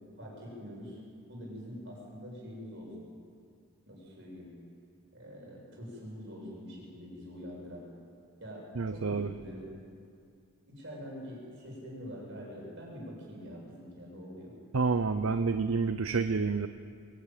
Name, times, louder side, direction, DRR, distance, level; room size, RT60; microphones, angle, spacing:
voice 1, 0.2-1.0 1.3-2.9 3.9-4.5 5.1-7.8 8.4-9.7 10.6-14.5, equal, 55° right, -3 dB, 6.7 m, -45 dB
voice 2, 8.8-9.3 14.7-16.7, right 4 dB, 75° right, 10 dB, 0.6 m, -29 dB
23.0 x 13.5 x 9.1 m, 2.3 s
head